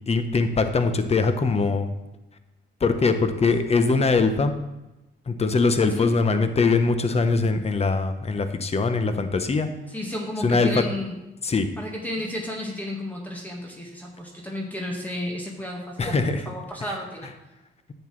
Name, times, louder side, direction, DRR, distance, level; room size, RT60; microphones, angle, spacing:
voice 1, 0.1-1.9 2.8-4.5 5.3-9.7 10.4-10.8 11.4-11.7 16.0-16.4 16.8-16.9, left 4 dB, 30° left, 8 dB, 1.0 m, -22 dB
voice 2, 9.9-11.2 11.8-16.2 16.4-17.3, left 1 dB, 10° left, -1 dB, 1.6 m, -32 dB
11.0 x 7.9 x 3.2 m, 0.99 s
cardioid pair, 90°, 20 cm